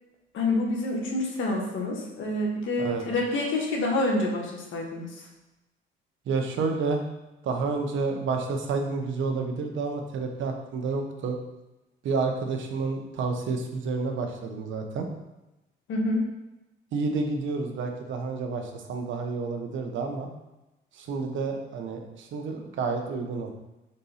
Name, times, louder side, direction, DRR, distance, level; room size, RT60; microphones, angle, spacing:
voice 1, 0.3-5.1 15.9-16.3, left 2 dB, 75° left, 0 dB, 1.5 m, -27 dB
voice 2, 6.3-7.0 7.4-11.4 12.0-15.1 16.9-20.3 20.9-23.5, right 4 dB, 75° right, 3 dB, 1.0 m, -30 dB
4.4 x 4.0 x 5.5 m, 1.0 s
cardioid pair, 90°, 20 cm